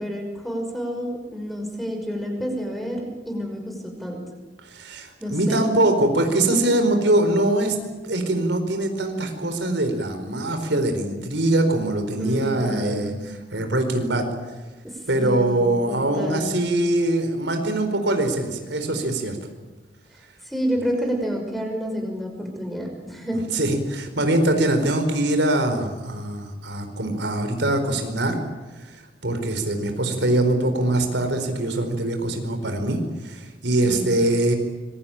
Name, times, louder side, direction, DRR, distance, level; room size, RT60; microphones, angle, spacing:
voice 1, 0.0-4.3 5.2-5.7 12.2-13.0 14.8-16.6 20.1-23.4 33.8-34.1, equal, ahead, 2 dB, 5.6 m, -29 dB
voice 2, 4.6-7.8 8.0-13.1 13.5-14.2 15.1-19.4 23.5-28.4 28.8-34.5, right 1 dB, 75° right, 6 dB, 4.5 m, -23 dB
26.0 x 23.0 x 8.9 m, 1.2 s
head